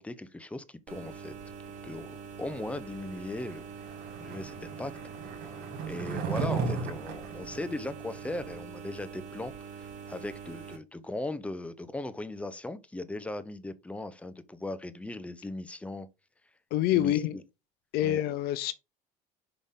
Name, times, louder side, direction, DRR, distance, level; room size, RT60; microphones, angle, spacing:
voice 1, 0.0-1.3 1.8-3.6 4.2-4.9 5.4-5.6 5.9-16.1 16.9-17.4 18.0-18.2, left 2 dB, 5° left, 0.9 m, -38 dB
sound 1, 0.9-10.8, right 6 dB, 45° right, 3.3 m, -44 dB
Skateboard, 3.2-8.6, right 5 dB, 65° right, 2.9 m, -36 dB
voice 2, 16.7-17.4 17.9-18.7, left 13 dB, 65° left, 0.7 m, -26 dB
6.0 x 5.3 x 3.8 m
supercardioid pair, 100°, 17 cm